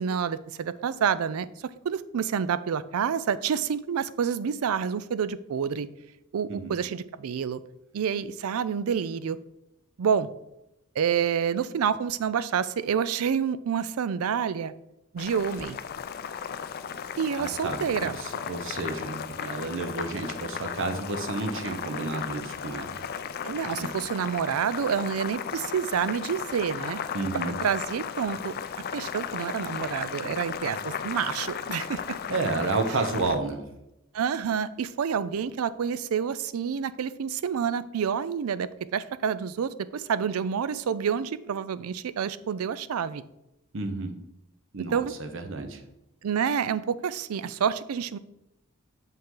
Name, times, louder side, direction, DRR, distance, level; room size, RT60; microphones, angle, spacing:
voice 1, 0.0-1.5 1.8-5.9 6.3-7.6 7.9-9.4 10.0-10.3 11.0-14.7 15.1-15.8 17.2-18.2 23.4-27.0 27.3-28.5 28.9-32.2 34.1-43.2 44.9-45.1 46.2-48.2, right 7 dB, 90° right, 16 dB, 0.4 m, -28 dB
Boiling, 15.2-33.4, left 7 dB, 45° left, 0.4 m, -35 dB
voice 2, 17.4-23.1 23.8-23.9 27.1-27.5 32.3-33.7 43.7-44.2 44.7-45.8, right 3 dB, 60° right, 7 dB, 0.8 m, -31 dB
6.9 x 5.5 x 3.8 m, 0.86 s
head